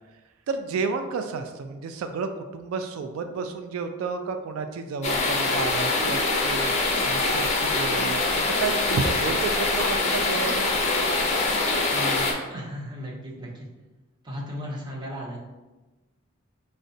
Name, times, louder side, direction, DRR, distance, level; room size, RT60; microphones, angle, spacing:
voice 1, 0.5-6.7 7.0-10.7, right 4 dB, 90° right, 8 dB, 0.3 m, -31 dB
sound 1, 5.0-12.3, left 3 dB, 35° left, 0.5 m, -24 dB
voice 2, 11.9-13.7 14.2-15.4, equal, 20° right, -3 dB, 0.6 m, -36 dB
4.8 x 2.1 x 2.6 m, 1.1 s
head